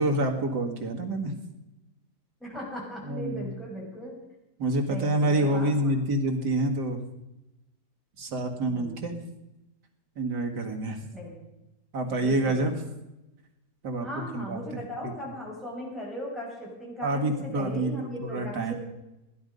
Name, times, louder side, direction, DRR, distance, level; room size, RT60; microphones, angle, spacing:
voice 1, 0.0-1.3 3.0-3.5 4.6-7.0 8.2-9.1 10.2-11.0 11.9-12.8 13.8-14.1 14.3-15.1 17.0-18.7, right 1 dB, 80° right, 3 dB, 2.5 m, -27 dB
voice 2, 2.4-4.1 4.9-5.7 8.7-9.3 11.1-11.5 12.2-12.7 14.0-18.7, equal, ahead, -5 dB, 6.3 m, -38 dB
17.0 x 11.0 x 5.3 m, 0.94 s
omnidirectional pair, 1.8 m